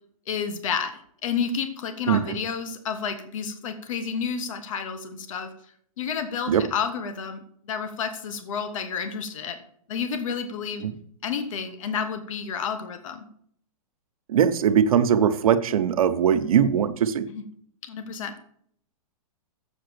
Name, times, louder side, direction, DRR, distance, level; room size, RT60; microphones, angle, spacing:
voice 1, 0.3-5.5 6.0-7.4 7.7-9.6 9.9-10.8 11.2-13.2 17.3-17.4 17.8-18.4, left 6 dB, 65° left, 9 dB, 1.4 m, -30 dB
voice 2, 14.3-17.3, right 8 dB, 75° right, 11 dB, 1.0 m, -21 dB
7.7 x 6.7 x 6.8 m, 0.64 s
hypercardioid pair, 155°, 18 cm